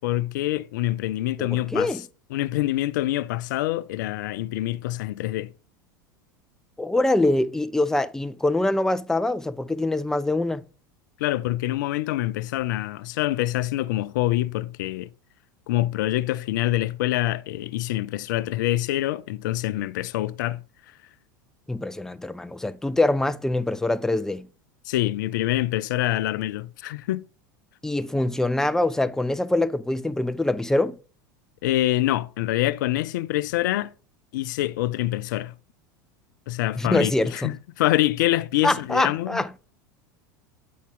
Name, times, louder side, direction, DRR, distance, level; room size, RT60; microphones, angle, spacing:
voice 1, 0.0-1.9 2.3-5.5 11.2-15.1 15.7-20.6 24.9-27.2 31.6-33.9 34.3-35.5 36.5-39.4, left 15 dB, 65° left, 0.5 m, -25 dB
voice 2, 1.4-2.0 6.8-10.7 21.7-24.5 27.8-31.0 36.8-37.6 38.6-39.5, left 2 dB, 5° left, 0.4 m, -24 dB
8.6 x 4.2 x 3.7 m
hypercardioid pair, 85°, 11 cm